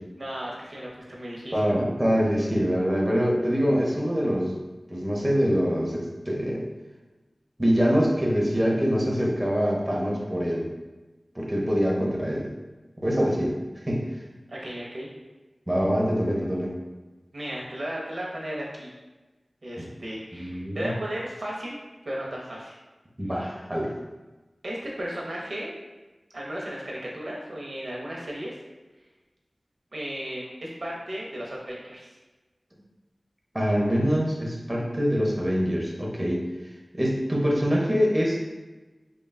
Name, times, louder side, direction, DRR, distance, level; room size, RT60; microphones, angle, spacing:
voice 1, 0.2-1.8 14.5-15.1 17.3-18.9 19.6-21.8 22.1-22.8 24.6-25.7 26.3-28.6 29.9-32.1, equal, 70° right, -4 dB, 0.6 m, -35 dB
voice 2, 1.5-4.6 4.9-6.6 7.6-10.7 11.3-12.5 13.0-13.6 13.9-14.0 15.7-16.7 19.8-19.9 20.3-20.9 23.2-23.9 33.5-36.4 36.9-38.4, equal, 25° right, -3 dB, 0.6 m, -24 dB
3.4 x 2.2 x 2.2 m, 1.2 s
wide cardioid pair, 45°, 0 cm